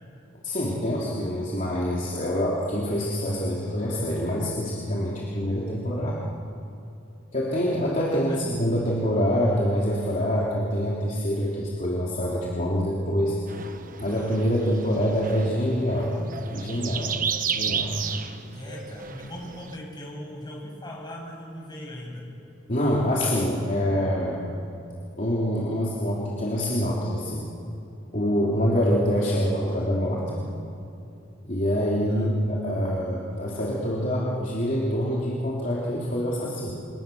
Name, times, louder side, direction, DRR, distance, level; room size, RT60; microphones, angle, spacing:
voice 1, 0.4-6.2 7.3-13.7 14.0-16.2 16.5-17.1 17.5-18.0 22.7-24.4 25.2-27.5 28.1-30.5 31.4-36.7, equal, 40° left, -5 dB, 3.3 m, -25 dB
voice 2, 8.1-8.5 18.5-22.2 32.1-32.3, equal, 25° left, -2 dB, 7.6 m, -39 dB
sound 1, 13.5-19.8, right 7 dB, 45° right, 1.2 m, -33 dB
28.5 x 27.5 x 7.2 m, 2.7 s
head